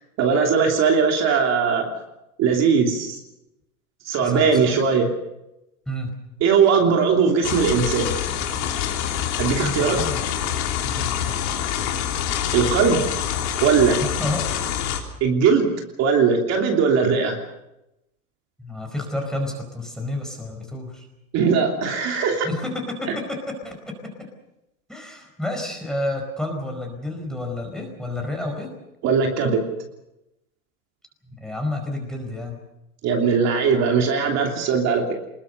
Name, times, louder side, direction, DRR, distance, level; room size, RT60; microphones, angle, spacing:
voice 1, 0.2-1.9 2.4-3.2 4.0-5.1 6.4-8.1 9.4-10.0 12.5-13.0 13.6-14.0 15.2-15.7 16.0-17.4 21.3-22.5 23.1-23.2 29.0-29.6 33.0-35.1, right 5 dB, 35° right, 2 dB, 3.1 m, -19 dB
voice 2, 4.2-4.8 5.9-6.1 9.6-10.2 10.8-11.4 14.0-14.4 18.6-21.0 22.4-23.4 23.6-24.1 24.9-28.7 31.3-32.6, left 1 dB, ahead, 2 dB, 4.8 m, -30 dB
sound 1, 7.4-15.0, left 9 dB, 50° left, 3.5 m, -26 dB
23.5 x 21.0 x 6.6 m, 0.91 s
hypercardioid pair, 130°, 44 cm